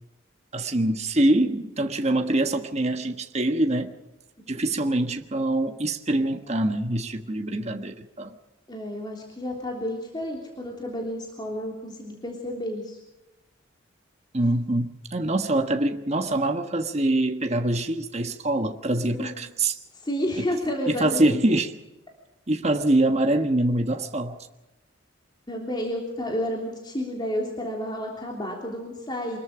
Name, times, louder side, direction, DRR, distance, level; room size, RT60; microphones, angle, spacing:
voice 1, 0.5-3.9 4.5-8.3 14.3-19.8 20.9-21.7 22.5-24.4, right 1 dB, 35° right, 1.4 m, -24 dB
voice 2, 8.7-13.0 19.1-19.5 19.9-21.4 25.5-29.4, equal, 25° left, 3.3 m, -31 dB
25.5 x 21.5 x 5.1 m
head